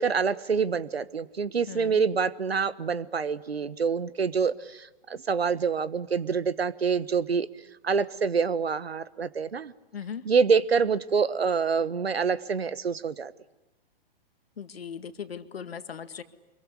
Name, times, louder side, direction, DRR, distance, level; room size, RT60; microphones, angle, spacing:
voice 1, 0.0-7.5 7.8-9.7 10.2-13.3, right 5 dB, 90° right, 18 dB, 1.3 m, -26 dB
voice 2, 1.7-2.0 9.9-10.2 14.6-16.2, left 7 dB, 80° left, 11 dB, 2.0 m, -38 dB
25.5 x 22.5 x 9.9 m, 1.0 s
hypercardioid pair, 120°, 30 cm